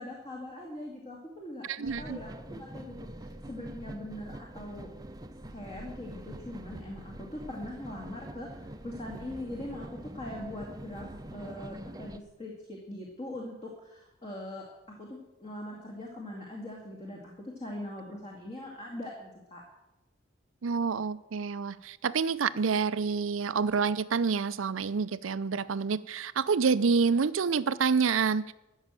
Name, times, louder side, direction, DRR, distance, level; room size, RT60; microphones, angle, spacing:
voice 1, 0.0-4.9 5.5-11.1 11.3-19.6, left 1 dB, 30° left, -1 dB, 2.2 m, -42 dB
voice 2, 1.7-2.2 20.6-28.5, right 5 dB, 90° right, 15 dB, 0.5 m, -28 dB
sound 1, 1.8-12.2, right 1 dB, 20° right, 0.7 m, -44 dB
13.5 x 6.4 x 9.1 m, 0.97 s
head